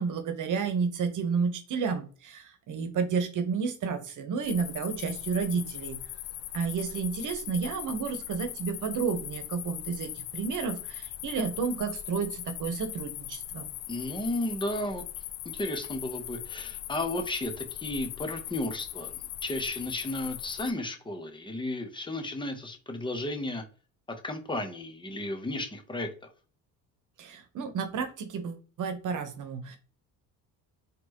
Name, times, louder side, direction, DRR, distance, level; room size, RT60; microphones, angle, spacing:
voice 1, 0.0-6.0 6.5-13.7 27.2-29.8, right 5 dB, 50° right, 8 dB, 1.1 m, -31 dB
sound 1, 4.4-20.7, left 13 dB, 75° left, 0.5 m, -40 dB
voice 2, 13.9-15.0 15.5-19.1 19.4-23.6 24.1-26.1, left 1 dB, 10° left, 5 dB, 0.9 m, -33 dB
4.2 x 3.2 x 3.0 m, 0.39 s
cardioid pair, 100°, 39 cm